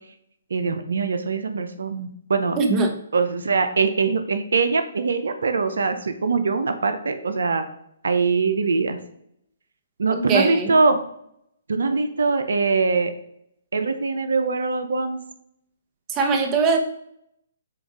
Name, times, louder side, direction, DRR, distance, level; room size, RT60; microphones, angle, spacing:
voice 1, 0.5-2.6 3.1-7.6 8.0-9.0 10.0-11.0 11.7-13.1 13.7-15.2, right 4 dB, 80° right, 8 dB, 0.8 m, -22 dB
voice 2, 2.6-2.9 10.1-10.7 16.1-16.8, right 4 dB, 25° right, 3 dB, 1.1 m, -21 dB
7.7 x 2.6 x 4.8 m, 0.72 s
hypercardioid pair, 145°, 0 cm